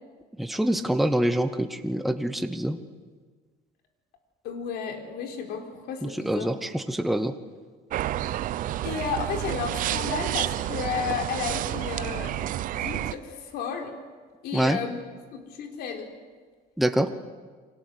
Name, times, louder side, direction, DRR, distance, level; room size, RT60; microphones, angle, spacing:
voice 1, 0.4-2.8 6.0-7.3 14.5-14.8 16.8-17.1, right 1 dB, ahead, 8 dB, 0.9 m, -25 dB
voice 2, 4.4-6.5 8.2-8.4 8.8-12.4 12.7-13.9 14.4-15.0 15.3-16.1, left 6 dB, 65° left, 4 dB, 4.4 m, -33 dB
sound 1, 7.9-13.1, right 13 dB, 50° right, 0.8 m, -30 dB
29.5 x 25.0 x 8.2 m, 1.5 s
cardioid pair, 165°, 18 cm